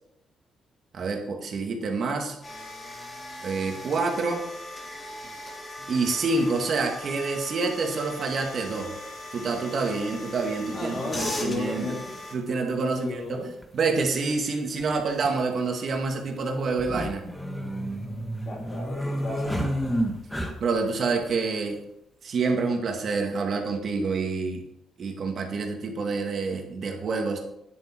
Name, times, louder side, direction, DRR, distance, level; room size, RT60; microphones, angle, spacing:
voice 1, 0.9-2.4 3.4-4.4 5.9-8.9 9.3-12.0 12.3-13.4 13.7-17.3 20.6-21.8 22.2-24.6 25.0-27.4, right 4 dB, 55° right, 3 dB, 2.3 m, -27 dB
sound 1, 2.4-12.3, left 1 dB, 25° left, 3.1 m, -39 dB
sound 2, 8.3-8.4 9.9-10.0 11.4-11.5 11.7-11.8 13.6-13.8 14.0-14.1 14.8-15.3 16.7-20.9, equal, 5° left, 1.8 m, -30 dB
voice 2, 10.7-12.2 12.8-13.5 18.4-19.8, left 2 dB, 45° left, 0 dB, 2.9 m, -34 dB
10.5 x 8.0 x 4.6 m, 0.80 s
cardioid pair, 90°, 0 cm